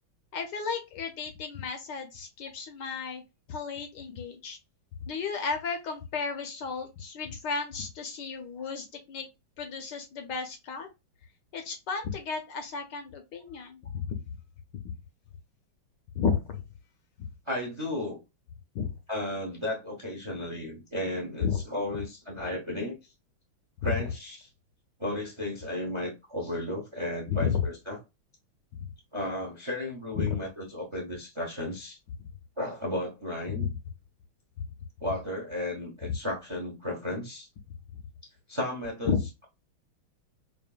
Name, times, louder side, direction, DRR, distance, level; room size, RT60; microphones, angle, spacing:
voice 1, 0.3-3.2 3.5-4.6 5.1-9.3 9.6-10.9 11.5-14.2 16.1-16.6 18.7-18.9 21.4-21.6 27.3-27.6 28.8-28.9 30.2-30.4 32.2-32.3 33.5-33.7 36.1-36.2 39.0-39.2, left 6 dB, 70° left, 1.2 m, -32 dB
voice 2, 17.5-18.2 19.1-23.0 23.8-24.5 25.0-28.0 29.1-32.0 32.6-33.7 35.0-37.5 38.5-39.1, left 1 dB, 30° right, 0.5 m, -34 dB
5.0 x 2.5 x 2.4 m
omnidirectional pair, 2.3 m